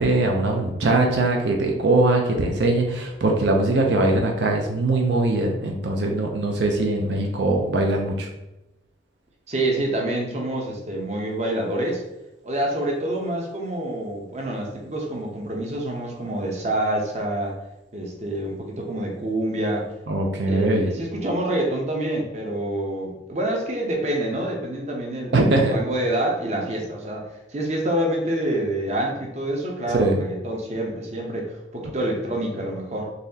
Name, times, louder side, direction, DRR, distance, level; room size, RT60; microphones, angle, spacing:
voice 1, 0.0-8.3 20.1-21.0 25.3-25.7 29.9-30.2, right 2 dB, 70° right, 1 dB, 0.5 m, -21 dB
voice 2, 9.5-12.0 12.4-17.6 17.9-19.9 20.4-33.1, right 1 dB, 40° right, 0 dB, 0.7 m, -27 dB
4.0 x 3.1 x 2.7 m, 0.96 s
head